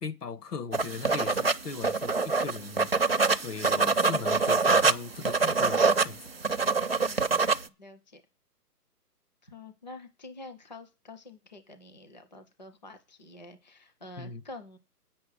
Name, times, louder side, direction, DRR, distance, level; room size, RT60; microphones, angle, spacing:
voice 1, 0.0-2.9 3.4-6.2 14.2-14.4, left 5 dB, 75° left, 1.7 m, -38 dB
sound 1, 0.7-7.7, right 4 dB, 40° right, 0.5 m, -25 dB
voice 2, 4.1-4.5 6.9-7.3 7.8-8.2 9.4-14.8, left 2 dB, 30° left, 0.6 m, -47 dB
8.6 x 6.9 x 6.6 m
hypercardioid pair, 175°, 48 cm